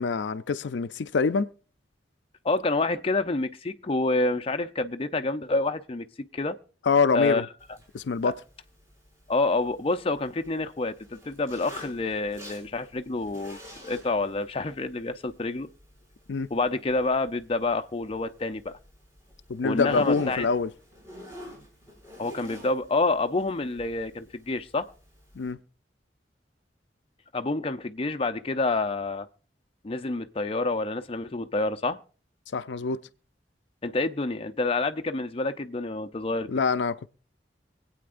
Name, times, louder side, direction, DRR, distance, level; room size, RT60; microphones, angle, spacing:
voice 1, 0.0-1.5 6.9-7.5 7.9-8.4 16.3-16.5 19.5-20.7 25.3-25.6 32.5-33.0 36.5-37.1, left 4 dB, 80° left, 0.5 m, -25 dB
voice 2, 2.4-6.5 7.1-7.4 8.2-8.3 9.3-11.0 11.2-13.6 13.8-15.7 16.5-18.8 19.6-20.5 22.2-24.9 27.3-29.3 29.8-32.0 33.8-36.5, left 3 dB, 35° left, 0.6 m, -28 dB
Zipper (clothing), 7.6-25.5, equal, 15° right, 6.3 m, -48 dB
25.0 x 8.7 x 2.5 m
head